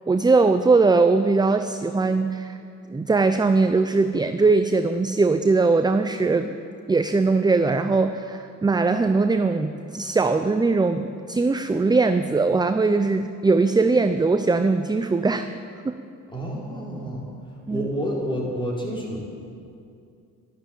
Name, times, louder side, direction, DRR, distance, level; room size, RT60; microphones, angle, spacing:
voice 1, 0.1-2.6 2.9-6.6 6.9-15.5 15.8-16.0 17.7-17.9, right 3 dB, 15° right, 9 dB, 0.6 m, -20 dB
voice 2, 16.3-19.2, equal, 15° left, -4 dB, 5.1 m, -29 dB
12.5 x 12.5 x 9.0 m, 2.5 s
cardioid pair, 90°, 30 cm